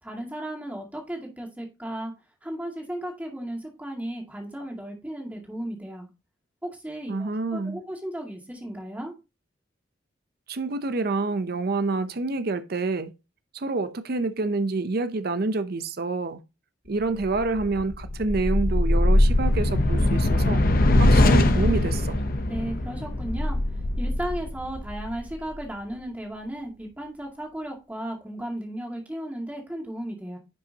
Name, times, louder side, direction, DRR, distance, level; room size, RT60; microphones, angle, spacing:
voice 1, 0.0-2.1 2.4-6.1 6.6-9.1 22.5-30.4, right 1 dB, 10° right, 2.1 m, -35 dB
voice 2, 7.1-7.8 10.5-13.1 13.5-16.4 16.9-20.6 21.0-22.2, right 3 dB, 55° right, 0.6 m, -27 dB
sound 1, 17.2-25.6, left 1 dB, 50° left, 0.8 m, -22 dB
10.5 x 5.5 x 2.8 m
head